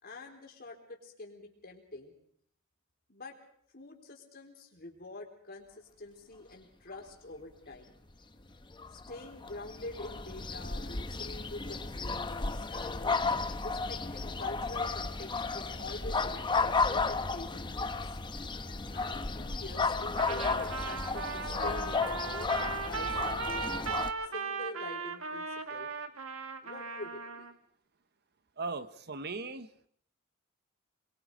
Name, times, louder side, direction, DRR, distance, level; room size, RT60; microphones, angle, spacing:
voice 1, 0.0-2.1 3.1-3.4 3.7-8.0 8.9-13.2 13.6-18.2 18.9-23.8 24.3-25.9 26.6-27.5, left 2 dB, 45° left, 1 dB, 4.2 m, -46 dB
sound 1, 8.7-24.1, left 4 dB, 20° left, 0.8 m, -33 dB
Trumpet, 20.2-27.5, right 4 dB, 75° right, 1.5 m, -37 dB
voice 2, 28.6-29.9, right 3 dB, 50° right, 12 dB, 1.0 m, -38 dB
27.5 x 22.0 x 5.0 m, 0.65 s
head